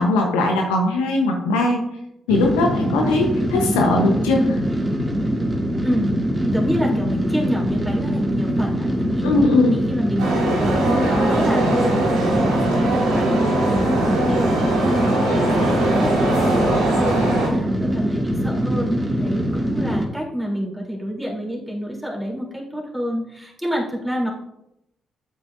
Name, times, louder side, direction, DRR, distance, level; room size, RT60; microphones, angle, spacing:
voice 1, 0.0-1.8 2.3-4.4 9.2-9.8, left 2 dB, 80° left, 1 dB, 1.0 m, -19 dB
sound 1, 2.3-20.1, equal, 20° right, 2.1 m, -23 dB
voice 2, 5.8-6.2 6.4-24.3, equal, ahead, -4 dB, 3.3 m, -28 dB
sound 2, 10.2-17.5, right 2 dB, 80° right, 2.6 m, -21 dB
8.9 x 8.0 x 2.7 m, 0.84 s
hypercardioid pair, 40°, 0 cm